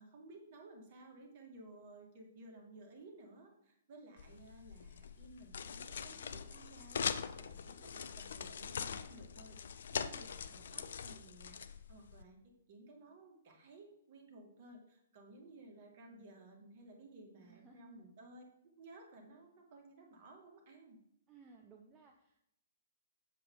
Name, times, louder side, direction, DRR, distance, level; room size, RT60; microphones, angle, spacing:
voice 1, 0.0-12.4 12.7-18.4 18.8-21.0, right 2 dB, 45° right, 1 dB, 2.4 m, -57 dB
sound 1, 4.2-12.2, left 7 dB, 60° left, 0.5 m, -43 dB
voice 2, 17.4-18.0 21.3-22.4, right 4 dB, 20° right, 1 dB, 0.8 m, -60 dB
7.7 x 7.5 x 3.9 m, 0.77 s
figure-of-eight pair, 115°, 0 cm